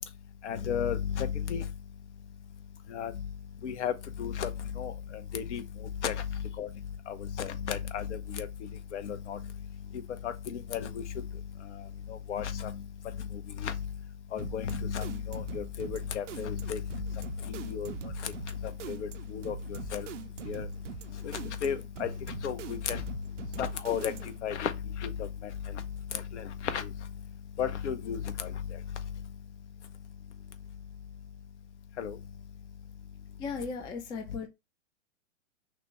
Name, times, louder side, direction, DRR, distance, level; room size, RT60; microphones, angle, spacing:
voice 1, 0.4-1.6 2.9-3.1 3.6-3.9 4.2-4.5 4.8-4.9 5.3-5.6 6.0-6.2 6.6-6.7 7.1-8.5 8.9-9.4 10.2-11.0 12.1-12.8 13.3-13.7 14.3-16.8 17.5-17.9 18.2-18.3 18.9-20.1 20.4-20.7 21.2-22.1 22.4-23.0 23.6-24.1 24.4-24.7 25.0-25.3 26.3-26.9 27.6-28.5 32.0-32.2, left 8 dB, 60° left, 0.9 m, -33 dB
sound 1, 14.4-24.5, right 10 dB, 65° right, 0.7 m, -44 dB
voice 2, 33.4-34.5, left 5 dB, 10° left, 0.4 m, -36 dB
5.9 x 2.2 x 3.0 m
figure-of-eight pair, 110°, 39 cm